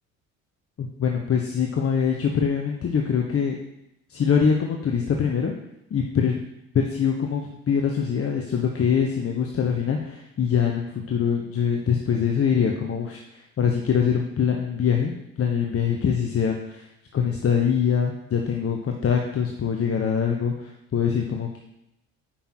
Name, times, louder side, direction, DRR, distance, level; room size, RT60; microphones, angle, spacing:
voice 1, 0.8-3.6 4.1-5.5 5.9-6.4 6.7-16.9 17.1-21.6, left 7 dB, 35° left, 1 dB, 1.1 m, -24 dB
8.6 x 5.8 x 4.5 m, 0.83 s
hypercardioid pair, 55°, 40 cm